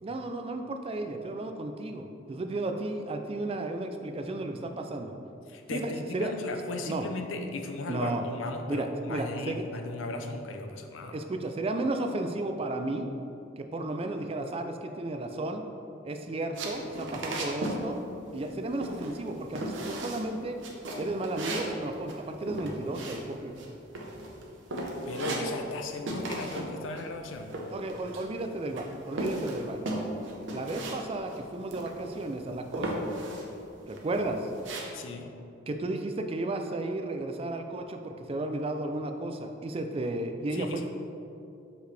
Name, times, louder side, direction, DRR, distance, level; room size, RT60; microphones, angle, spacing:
voice 1, 0.0-5.1 5.7-6.3 6.9-7.1 7.9-8.2 8.7-9.6 11.1-13.1 13.6-15.6 16.0-18.0 18.3-20.6 21.0-23.5 27.7-29.8 30.5-32.9 33.9-34.4 35.7-40.9, right 2 dB, 30° right, 6 dB, 0.4 m, -33 dB
voice 2, 5.5-11.2 25.1-27.6 34.9-35.3 40.5-40.9, left 2 dB, 80° left, 5 dB, 0.6 m, -37 dB
sound 1, 16.5-17.8 18.1-18.5 18.8-19.3 19.6-20.3 20.6-23.7 23.9-24.4 24.7-25.8 26.1-26.7 27.0-28.4 28.8-31.0 31.3-31.4 31.7-32.3 32.7-33.5 33.9-34.8, right 1 dB, 70° right, 0.8 m, -35 dB
6.0 x 5.4 x 3.3 m, 2.7 s
head